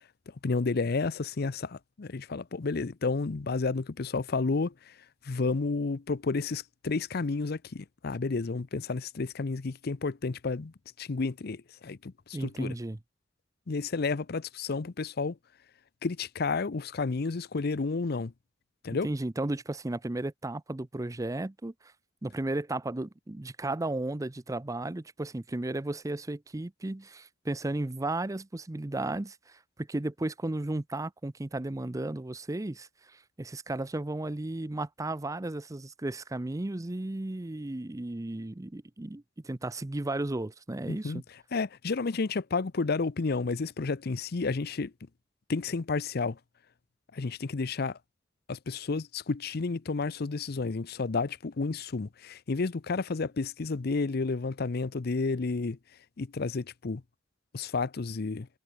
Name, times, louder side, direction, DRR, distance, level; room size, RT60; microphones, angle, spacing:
voice 1, 0.0-5.0 5.2-12.8 13.7-15.4 16.0-18.3 18.8-19.1 40.9-41.2 41.5-44.9 45.5-46.4 47.1-48.0 48.5-55.8 56.2-57.0 57.5-58.5, left 4 dB, 55° left, 0.6 m, -31 dB
voice 2, 12.3-13.0 19.0-21.7 22.2-41.2, right 2 dB, 15° right, 0.5 m, -34 dB
head